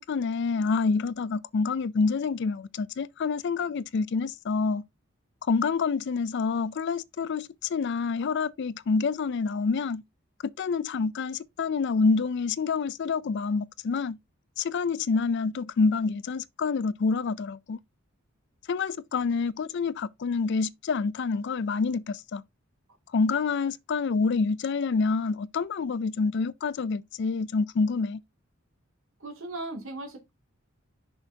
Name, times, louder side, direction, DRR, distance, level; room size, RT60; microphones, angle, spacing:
voice 1, 0.0-4.8 5.5-10.0 10.4-14.2 14.6-17.8 18.7-22.4 23.1-28.2, left 4 dB, 55° left, 0.4 m, -27 dB
voice 2, 29.2-30.3, right 2 dB, 80° right, 2.6 m, -37 dB
6.7 x 6.3 x 2.8 m
head